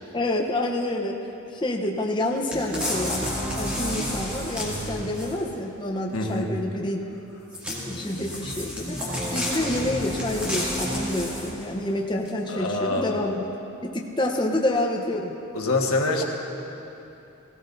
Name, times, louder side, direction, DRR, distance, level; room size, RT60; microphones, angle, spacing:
voice 1, 0.1-1.2 1.5-7.0 7.8-9.0 9.3-13.4 13.8-15.3, left 1 dB, 20° left, 0 dB, 0.7 m, -28 dB
sound 1, 2.5-5.5 7.5-11.7 12.2-12.3, equal, 5° right, 2.3 m, -30 dB
voice 2, 6.1-6.5 12.5-13.2 15.5-16.2, left 2 dB, 85° left, 1 dB, 1.4 m, -25 dB
17.5 x 17.0 x 2.6 m, 2.9 s
head